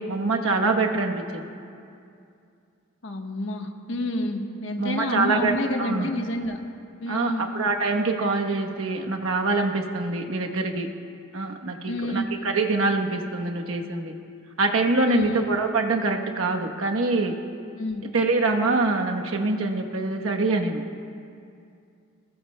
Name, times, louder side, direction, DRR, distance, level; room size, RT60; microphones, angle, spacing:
voice 1, 0.0-1.4 4.8-5.5 5.8-6.1 7.1-10.9 11.3-14.1 14.6-17.3 18.1-20.8, right 3 dB, 75° right, 2 dB, 1.0 m, -24 dB
voice 2, 3.0-6.6 7.0-7.5 11.8-12.3 15.1-15.4 17.8-18.0, left 1 dB, 60° left, 3 dB, 1.2 m, -29 dB
21.5 x 20.0 x 2.2 m, 2.5 s
head